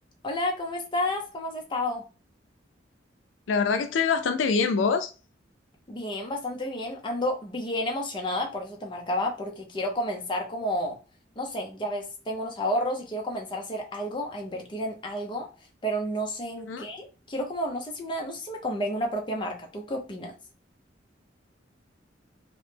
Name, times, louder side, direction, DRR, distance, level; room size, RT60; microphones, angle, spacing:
voice 1, 0.2-2.0 5.9-11.0 11.4-15.5 15.8-20.3, left 1 dB, 25° left, 0.6 m, -31 dB
voice 2, 3.5-5.1 16.7-16.8, left 5 dB, 90° left, 0.4 m, -24 dB
3.0 x 2.1 x 3.3 m
head